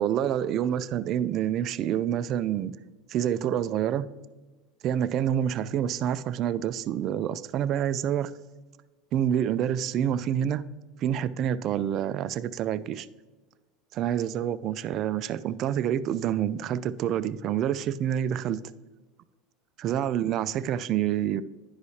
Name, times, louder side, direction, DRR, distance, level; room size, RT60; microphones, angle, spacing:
voice 1, 0.0-2.7 3.1-4.0 4.8-8.3 9.1-10.6 11.0-13.1 13.9-18.6 19.8-21.4, right 10 dB, 45° right, 14 dB, 0.3 m, -27 dB
11.0 x 4.8 x 2.8 m, 1.2 s
supercardioid pair, 125°, 0 cm